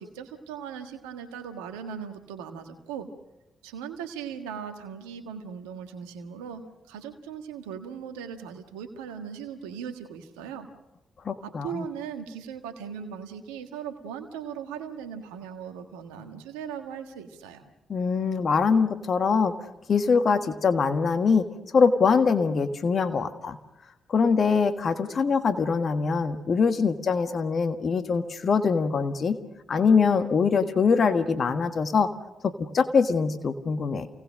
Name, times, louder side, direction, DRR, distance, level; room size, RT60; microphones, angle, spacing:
voice 1, 0.0-3.1 3.6-10.7 11.4-17.6, right 7 dB, 90° right, 6 dB, 1.5 m, -38 dB
voice 2, 11.2-11.8 17.9-19.5 19.9-21.5 21.7-23.6 24.1-29.4 29.7-32.1 32.4-34.1, left 5 dB, 55° left, 9 dB, 1.5 m, -23 dB
28.0 x 18.5 x 6.4 m, 0.93 s
hypercardioid pair, 45°, 0 cm